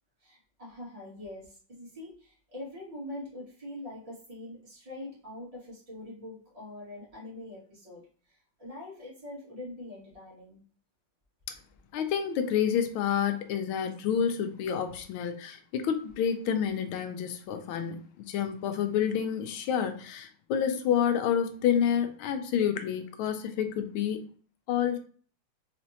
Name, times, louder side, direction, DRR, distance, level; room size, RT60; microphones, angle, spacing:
voice 1, 0.2-8.0 8.3-10.6, left 1 dB, 15° right, 2.2 m, -43 dB
voice 2, 11.9-24.2 24.7-25.0, left 8 dB, 80° left, 1.4 m, -29 dB
4.1 x 3.6 x 2.9 m
omnidirectional pair, 2.3 m